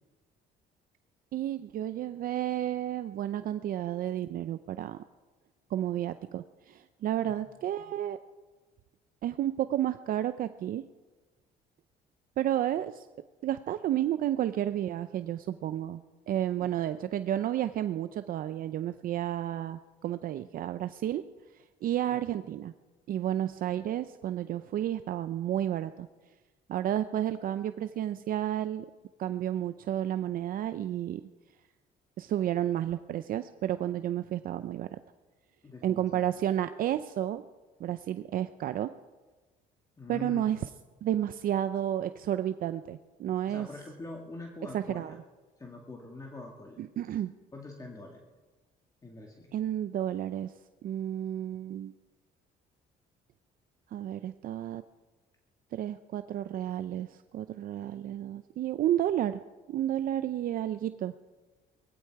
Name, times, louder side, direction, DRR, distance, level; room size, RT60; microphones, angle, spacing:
voice 1, 1.3-5.0 5.7-8.2 9.2-10.8 12.4-13.1 13.4-16.0 16.3-21.2 21.8-22.7 23.1-26.1 26.7-28.9 29.2-31.2 32.2-35.0 35.8-37.4 37.8-38.9 40.1-40.6 41.0-43.7 44.7-45.1 46.8-47.3 49.5-50.5 50.8-51.9 53.9-54.8 55.7-59.4 59.7-61.1, right 11 dB, 55° right, 11 dB, 0.6 m, -31 dB
voice 2, 35.6-36.3 40.0-40.6 43.5-45.2 45.6-46.8 47.5-48.3 49.0-49.5, left 2 dB, 20° left, 0 dB, 2.0 m, -44 dB
19.5 x 15.5 x 4.7 m, 1.3 s
cardioid pair, 110°, 17 cm